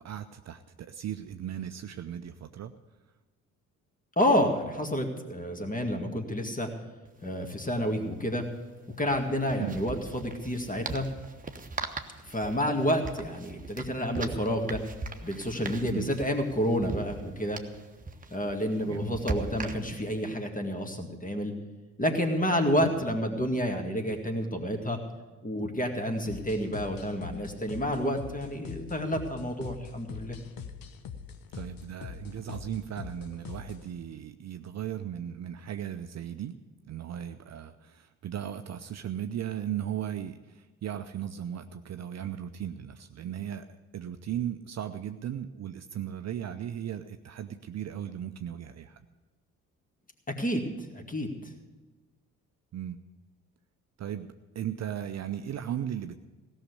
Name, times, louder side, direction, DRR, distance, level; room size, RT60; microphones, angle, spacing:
voice 1, 0.0-2.7 9.6-9.8 15.9-16.1 18.9-19.2 22.8-22.9 31.5-36.6 36.9-49.1 52.7-53.0 54.0-56.2, right 10 dB, 40° right, 9 dB, 0.6 m, -37 dB
voice 2, 4.2-6.7 7.2-8.4 9.0-11.1 12.2-14.8 15.2-17.6 18.3-21.5 22.0-25.0 25.4-30.4 50.4-51.3, equal, 20° left, 4 dB, 2.2 m, -29 dB
sound 1, 7.1-7.2 7.4-7.5 9.0-20.2, right 3 dB, 20° right, 1.2 m, -40 dB
sound 2, 26.3-33.9, left 7 dB, 55° left, 1.1 m, -43 dB
17.0 x 6.6 x 8.3 m, 1.2 s
figure-of-eight pair, 45°, 42 cm